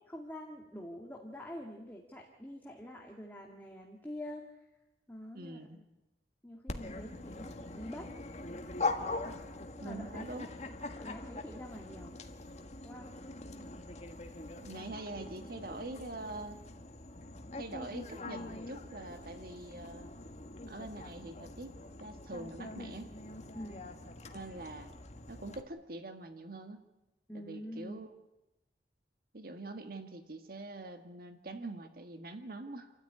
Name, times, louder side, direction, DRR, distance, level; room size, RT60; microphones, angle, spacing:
voice 1, 0.1-4.6 5.1-5.8 6.4-8.1 9.8-10.3 11.0-12.2 12.8-13.2 13.5-13.9 23.5-23.9 27.3-28.0, equal, 10° left, 0 dB, 2.1 m, -46 dB
voice 2, 5.3-5.8 9.8-10.5 14.6-16.6 17.6-20.1 20.7-23.1 24.3-24.9 25.3-26.9 27.3-28.1 29.3-32.9, right 2 dB, 55° right, 7 dB, 1.7 m, -44 dB
Dog, 6.7-25.6, left 2 dB, 40° left, 1.7 m, -43 dB
29.0 x 13.5 x 9.8 m, 1.0 s
head